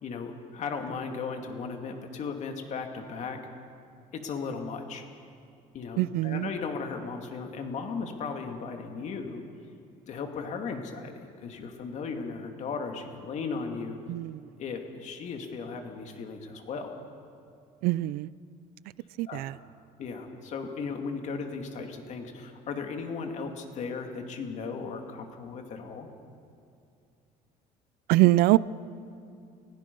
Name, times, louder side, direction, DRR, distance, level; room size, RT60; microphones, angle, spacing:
voice 1, 0.0-3.4 4.1-5.0 5.7-9.4 10.1-14.0 14.6-16.9 19.3-19.4 20.0-26.1, left 5 dB, 50° left, 4 dB, 2.4 m, -36 dB
voice 2, 6.0-6.5 14.1-14.4 17.8-18.3 19.2-19.6 28.1-28.6, right 18 dB, 75° right, 20 dB, 0.5 m, -23 dB
30.0 x 16.5 x 5.4 m, 2.5 s
cardioid pair, 140°, 16 cm